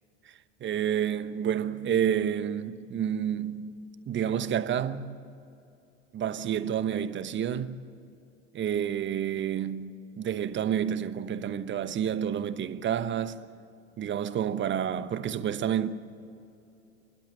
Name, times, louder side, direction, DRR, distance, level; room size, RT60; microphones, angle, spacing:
voice 1, 0.6-5.2 6.1-7.8 8.5-13.4 14.0-15.9, right 9 dB, 35° right, 1.0 m, -29 dB
28.5 x 12.0 x 9.0 m
hypercardioid pair, 75°, 33 cm